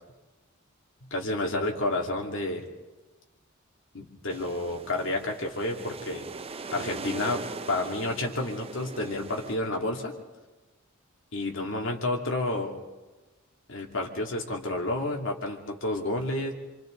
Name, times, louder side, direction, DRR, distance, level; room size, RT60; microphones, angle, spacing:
voice 1, 1.1-2.6 3.9-6.3 6.7-7.4 7.7-10.1 11.3-12.8 13.7-16.5, left 2 dB, 65° left, 1 dB, 2.6 m, -30 dB
sound 1, 4.3-9.6, right 4 dB, 30° right, 0.6 m, -40 dB
27.5 x 26.0 x 3.9 m, 1.2 s
head